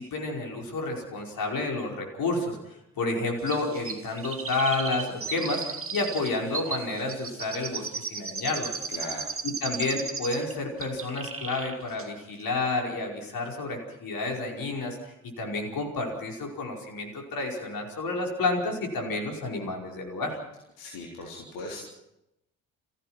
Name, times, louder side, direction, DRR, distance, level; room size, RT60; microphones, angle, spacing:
voice 1, 0.0-2.6 3.0-8.7 9.4-20.4, left 2 dB, 50° left, 1 dB, 5.2 m, -30 dB
Chirp tweet, 3.5-10.5 10.8-11.7 12.0-12.1, right 5 dB, 30° right, 2.5 m, -35 dB
voice 2, 8.9-9.3 20.8-21.8, left 2 dB, 65° left, -2 dB, 3.8 m, -38 dB
30.0 x 15.5 x 6.0 m, 0.86 s
figure-of-eight pair, 45°, 45 cm